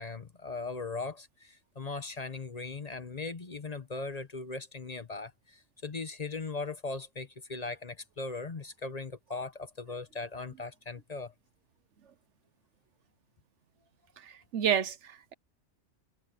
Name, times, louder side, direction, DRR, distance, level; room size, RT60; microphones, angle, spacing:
voice 1, 0.0-11.3, left 3 dB, 35° left, 1.0 m, -39 dB
voice 2, 14.2-15.3, right 9 dB, 75° right, 1.2 m, -30 dB
omnidirectional pair, 1.2 m